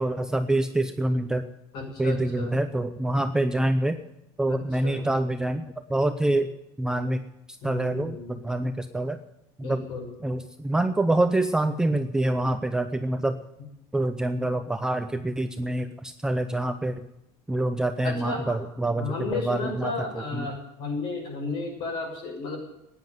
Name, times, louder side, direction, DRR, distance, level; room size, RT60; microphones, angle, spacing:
voice 1, 0.0-1.5 2.0-4.0 4.4-6.5 6.8-7.2 7.6-9.2 9.6-9.8 10.2-13.4 13.9-17.0 17.5-19.1 19.4-20.5, right 1 dB, 5° right, 8 dB, 0.6 m, -26 dB
voice 2, 1.7-2.6 4.5-5.0 7.6-8.4 9.6-10.1 18.0-18.6 18.9-22.6, left 4 dB, 45° left, 2 dB, 6.3 m, -33 dB
14.5 x 10.0 x 9.3 m, 0.88 s
cardioid pair, 165°, 11 cm